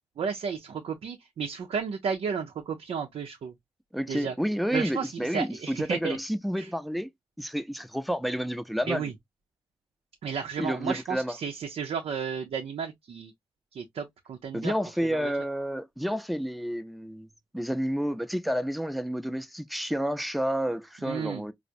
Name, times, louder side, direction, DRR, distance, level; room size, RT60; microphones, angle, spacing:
voice 1, 0.2-3.5 4.1-4.3 4.7-6.2 6.6-6.7 8.9-9.1 10.2-13.3 13.7-14.7 15.0-15.3 21.0-21.4, right 6 dB, 85° right, 0.5 m, -33 dB
voice 2, 3.9-7.1 7.4-9.1 10.6-11.4 14.5-17.3 17.5-21.5, equal, ahead, 0.5 m, -30 dB
4.6 x 2.0 x 2.5 m
cardioid pair, 60°, 10 cm